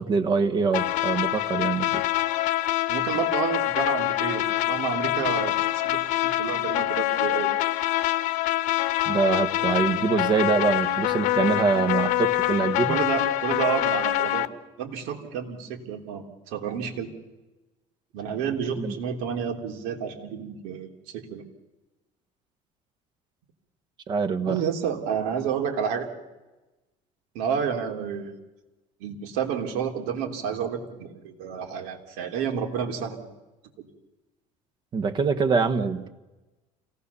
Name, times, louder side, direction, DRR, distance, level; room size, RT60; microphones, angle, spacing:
voice 1, 0.0-2.1 9.1-13.0 18.8-18.9 24.1-24.6 34.9-36.1, right 5 dB, 30° right, 10 dB, 1.3 m, -24 dB
sound 1, 0.7-14.5, left 15 dB, 60° left, 1.1 m, -25 dB
voice 2, 2.9-7.5 12.9-14.5 14.8-17.1 18.1-21.4 24.4-26.1 27.3-28.4 29.0-33.3 33.8-33.9, right 7 dB, 85° right, 4 dB, 3.3 m, -30 dB
28.0 x 18.0 x 7.0 m, 1.1 s
cardioid pair, 165°, 15 cm